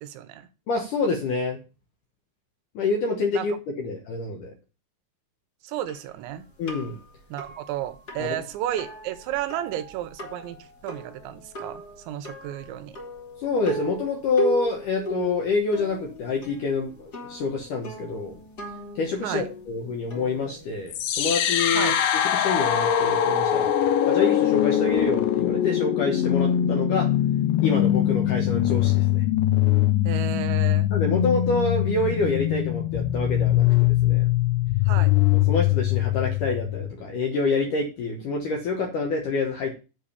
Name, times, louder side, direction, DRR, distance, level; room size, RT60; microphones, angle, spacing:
voice 1, 0.0-0.5 3.3-3.5 5.6-6.5 7.3-10.6 10.8-13.0 19.2-19.5 21.7-22.0 30.0-30.9 34.9-35.1, right 12 dB, 85° right, 11 dB, 3.0 m, -32 dB
voice 2, 0.7-1.6 2.8-4.5 6.6-7.0 8.2-8.3 13.4-18.3 19.0-21.9 22.3-23.7 24.0-27.1 27.6-29.2 30.9-34.3 35.5-39.7, left 3 dB, 70° left, 2 dB, 2.0 m, -27 dB
sound 1, 5.9-21.2, right 1 dB, 45° left, 1.2 m, -38 dB
sound 2, 20.9-36.9, left 12 dB, 85° left, 3.3 m, -22 dB
8.3 x 5.0 x 6.9 m, 0.32 s
omnidirectional pair, 5.2 m